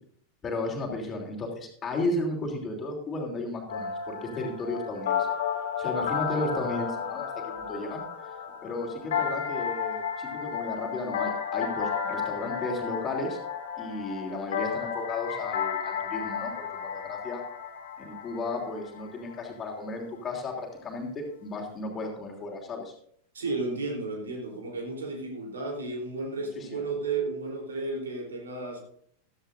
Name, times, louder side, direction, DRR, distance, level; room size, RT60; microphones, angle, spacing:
voice 1, 0.4-5.3 5.8-8.0 8.6-13.4 13.8-17.4 18.0-22.9 26.5-26.8, left 2 dB, 20° left, 0 dB, 3.0 m, -34 dB
sound 1, 3.7-19.4, left 7 dB, 60° left, 2.0 m, -33 dB
voice 2, 23.3-28.8, right 3 dB, 70° right, 1 dB, 3.4 m, -33 dB
15.5 x 13.5 x 2.6 m, 0.63 s
figure-of-eight pair, 90°, 0 cm